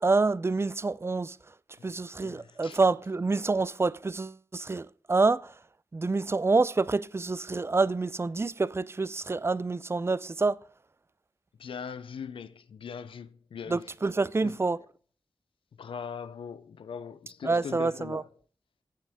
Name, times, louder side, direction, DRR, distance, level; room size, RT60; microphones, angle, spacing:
voice 1, 0.0-1.4 1.8-5.5 5.9-10.6 13.7-14.8 17.4-18.2, right 3 dB, 30° right, 0.4 m, -27 dB
voice 2, 2.2-2.8 11.6-13.9 14.4-14.6 15.8-18.3, left 6 dB, 90° left, 0.4 m, -41 dB
8.4 x 7.7 x 3.5 m
cardioid pair, 50°, 9 cm